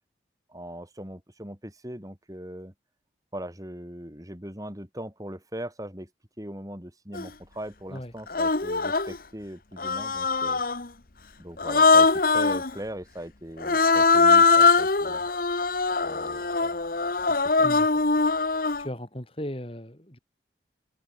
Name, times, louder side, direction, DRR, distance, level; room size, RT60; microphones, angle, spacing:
voice 1, 0.5-2.7 3.3-6.1 6.4-10.6 11.4-15.2 16.0-16.7 17.3-17.7, right 1 dB, 20° right, 4.0 m, -40 dB
Human voice, 7.1-7.3 8.3-9.2 9.8-10.9 11.6-12.7 13.6-18.9, left 4 dB, 50° left, 1.4 m, -22 dB
voice 2, 18.8-20.2, equal, 30° left, 3.8 m, -37 dB
head